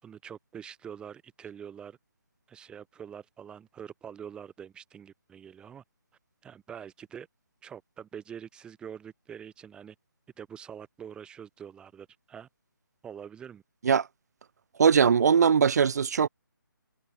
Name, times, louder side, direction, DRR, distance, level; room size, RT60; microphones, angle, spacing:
voice 1, 0.0-2.0 2.5-5.8 6.4-7.3 7.6-10.0 10.4-12.5 13.0-13.6, right 8 dB, 10° right, 3.8 m, -45 dB
voice 2, 14.8-16.3, right 6 dB, 50° right, 0.8 m, -21 dB
figure-of-eight pair, 155°, 12 cm